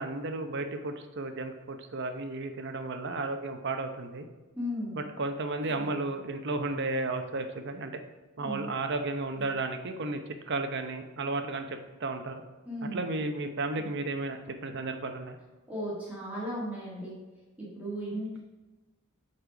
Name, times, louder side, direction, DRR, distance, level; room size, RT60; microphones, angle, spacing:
voice 1, 0.0-4.2 5.0-7.9 8.4-10.2 10.5-12.4 12.8-15.4, right 2 dB, 55° right, 6 dB, 0.8 m, -33 dB
voice 2, 4.5-5.0 8.4-8.7 12.7-13.1 15.7-17.2 17.6-18.4, equal, 5° right, -7 dB, 1.8 m, -35 dB
8.1 x 4.3 x 5.0 m, 1.2 s
head